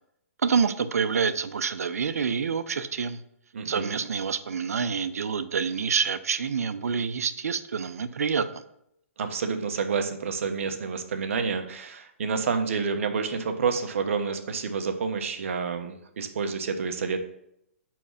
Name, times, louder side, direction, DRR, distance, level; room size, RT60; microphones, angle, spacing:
voice 1, 0.4-3.2 3.6-8.6, right 6 dB, 85° right, 11 dB, 0.6 m, -27 dB
voice 2, 3.5-4.0 9.2-17.2, right 5 dB, 60° right, 6 dB, 1.1 m, -29 dB
6.1 x 4.6 x 5.5 m, 0.76 s
hypercardioid pair, 160°, 8 cm